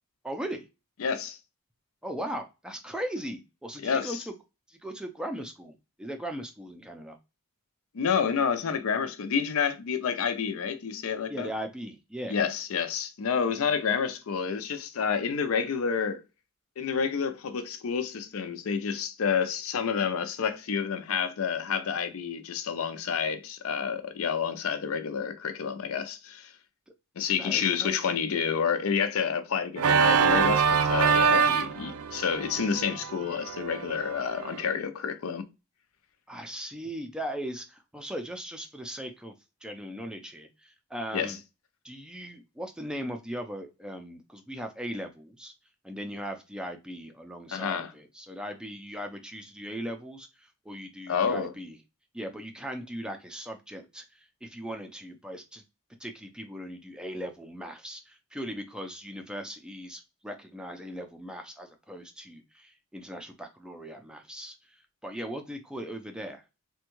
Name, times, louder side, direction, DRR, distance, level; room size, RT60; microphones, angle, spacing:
voice 1, 0.2-0.7 2.0-4.3 4.7-7.2 11.3-12.4 27.4-28.1 31.3-31.5 36.3-39.3 39.6-41.4 41.8-45.5 45.8-51.8 52.1-55.6 56.0-66.4, equal, 5° right, 0.3 m, -38 dB
voice 2, 1.0-1.4 3.8-4.2 7.9-11.5 12.3-16.2 16.8-26.5 27.2-35.5 41.1-41.3 47.5-47.9 51.1-51.5, left 6 dB, 75° left, 0.5 m, -29 dB
Organ, 29.8-34.6, right 6 dB, 85° right, 0.4 m, -25 dB
3.4 x 2.2 x 2.9 m
head